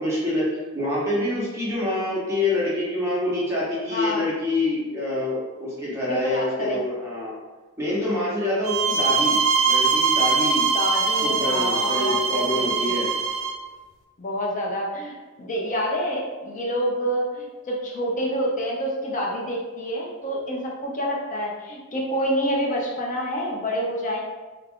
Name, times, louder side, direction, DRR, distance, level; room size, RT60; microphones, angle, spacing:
voice 1, 0.0-7.3 7.8-10.7 11.2-13.1, left 1 dB, 15° right, -8 dB, 0.8 m, -26 dB
voice 2, 3.9-4.3 6.1-6.8 10.7-12.9 14.2-24.2, equal, 40° left, -2 dB, 0.6 m, -27 dB
sound 1, 8.6-13.6, right 5 dB, 75° right, 0.4 m, -22 dB
3.4 x 2.4 x 3.5 m, 1.3 s
head